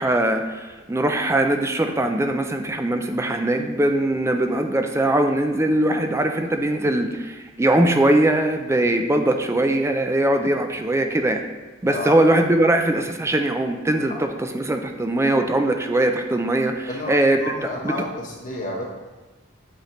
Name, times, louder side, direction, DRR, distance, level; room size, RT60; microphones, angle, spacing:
voice 1, 0.0-11.4 11.8-17.4 17.8-17.9, right 1 dB, 15° right, 5 dB, 0.4 m, -21 dB
voice 2, 11.9-12.2 14.1-14.2 16.9-18.8, left 1 dB, 40° left, -1 dB, 1.1 m, -31 dB
8.0 x 4.2 x 3.0 m, 1.2 s
head